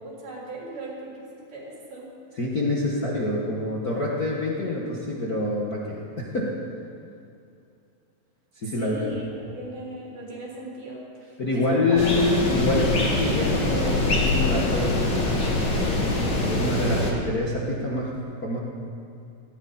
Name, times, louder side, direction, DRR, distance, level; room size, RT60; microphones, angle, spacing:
voice 1, 0.0-2.1 8.8-12.0, right 2 dB, 70° right, -5 dB, 5.9 m, -38 dB
voice 2, 2.4-6.5 8.5-9.1 11.4-14.9 15.6-16.0 16.4-18.1 18.4-18.6, left 2 dB, 80° left, -5 dB, 0.8 m, -26 dB
sound 1, 12.0-17.1, left 2 dB, 35° left, 2.1 m, -24 dB
19.0 x 16.0 x 4.3 m, 2.5 s
omnidirectional pair, 4.4 m